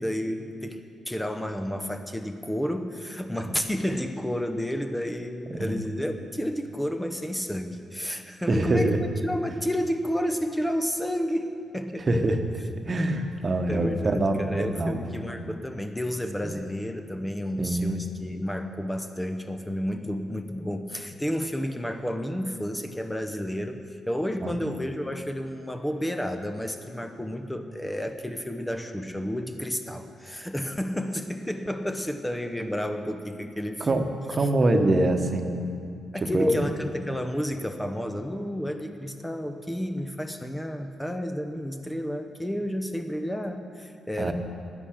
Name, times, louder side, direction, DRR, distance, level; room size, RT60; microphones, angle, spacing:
voice 1, 0.0-8.9 9.2-12.1 13.7-34.0 36.1-44.3, equal, 10° left, 6 dB, 1.0 m, -31 dB
voice 2, 8.5-9.0 12.1-12.4 12.6-15.0 17.6-18.0 24.4-24.6 33.8-35.5 36.3-36.6 44.2-44.3, right 1 dB, 40° right, 5 dB, 1.2 m, -24 dB
11.5 x 10.0 x 6.6 m, 2.4 s
hypercardioid pair, 45°, 0 cm